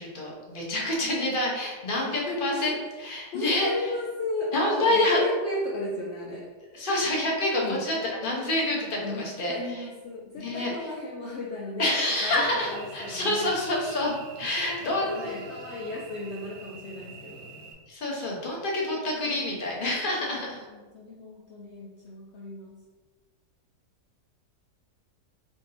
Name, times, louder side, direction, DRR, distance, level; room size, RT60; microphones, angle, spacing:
voice 1, 0.0-3.7 4.5-5.2 6.7-9.9 10.4-10.7 11.8-15.1 17.9-20.6, left 1 dB, 45° left, -3 dB, 0.8 m, -27 dB
voice 2, 1.9-2.6 3.0-6.5 7.6-7.8 9.0-11.9 12.2-13.5 14.5-17.5 20.7-22.8, left 2 dB, 90° left, -2 dB, 0.6 m, -35 dB
Cricket / Buzz, 12.3-17.7, right 3 dB, 70° right, 1.0 m, -44 dB
3.7 x 2.6 x 4.0 m, 1.3 s
omnidirectional pair, 1.7 m